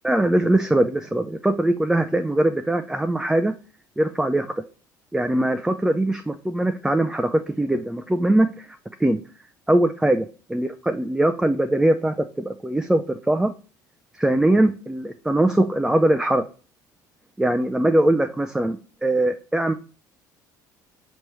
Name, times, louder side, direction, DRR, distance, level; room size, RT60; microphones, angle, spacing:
voice 1, 0.0-3.5 4.0-4.4 5.1-8.7 9.0-9.2 9.7-10.3 10.5-13.5 14.1-16.4 17.4-19.7, right 1 dB, 5° right, 8 dB, 0.3 m, -21 dB
5.3 x 3.0 x 2.9 m, 0.37 s
hypercardioid pair, 65°, 10 cm